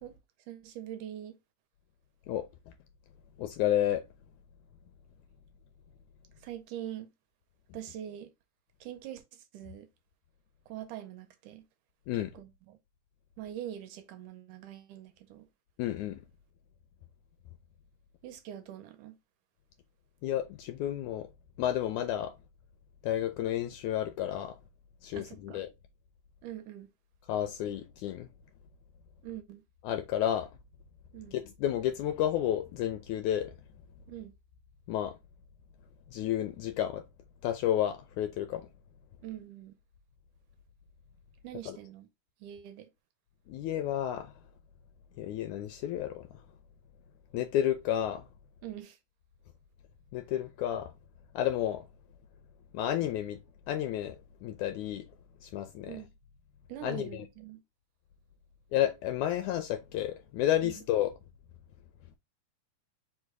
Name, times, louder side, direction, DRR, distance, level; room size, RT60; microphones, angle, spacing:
voice 1, 0.5-1.4 6.4-7.1 7.7-8.3 8.8-9.9 10.7-11.7 12.1-12.8 13.4-15.5 18.2-19.2 25.1-25.6 26.4-26.9 29.2-29.6 31.1-31.3 34.1-34.3 39.2-39.7 41.4-42.1 42.4-42.9 48.6-49.0 55.9-56.1 56.7-57.6 60.6-60.8, right 11 dB, 80° right, 2.0 m, -43 dB
voice 2, 3.4-4.0 12.1-12.3 15.8-16.2 20.2-21.3 21.6-22.3 23.0-24.6 25.0-25.7 27.3-28.3 29.8-30.5 31.3-33.5 34.9-35.2 36.1-37.0 37.4-38.7 41.7-41.8 43.5-44.3 45.2-46.2 47.3-48.2 50.1-50.9 51.3-51.8 52.7-53.4 53.7-55.1 55.4-56.0 56.8-57.2 58.7-61.1, left 11 dB, 80° left, 1.7 m, -31 dB
5.1 x 2.2 x 4.5 m
omnidirectional pair, 3.7 m